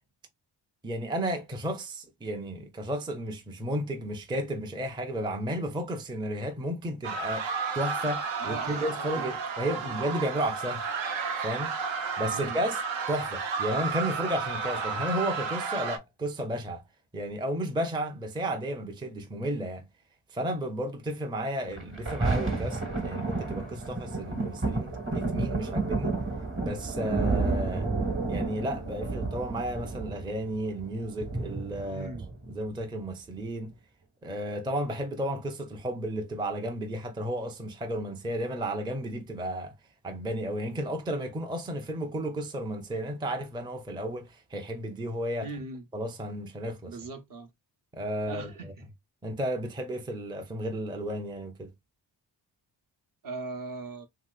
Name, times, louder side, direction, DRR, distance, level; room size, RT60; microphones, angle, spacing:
voice 1, 0.8-7.5 7.7-10.8 11.4-11.7 12.2-12.8 13.1-16.8 17.1-19.9 20.3-26.2 26.6-27.9 28.3-32.1 32.5-33.8 34.2-39.7 40.0-45.5 45.9-47.0 47.9-48.7 49.2-51.7, right 1 dB, 10° right, 0.5 m, -33 dB
sound 1, 7.0-16.0, right 5 dB, 80° right, 0.8 m, -32 dB
voice 2, 8.4-9.3 12.3-12.6 31.8-32.3 45.4-45.8 46.9-47.5 48.3-48.7 53.2-54.1, right 3 dB, 45° right, 0.8 m, -39 dB
Thunder, 21.7-32.7 33.4-33.5, right 3 dB, 25° right, 1.1 m, -31 dB
3.0 x 2.8 x 2.3 m
cardioid pair, 90°, 45 cm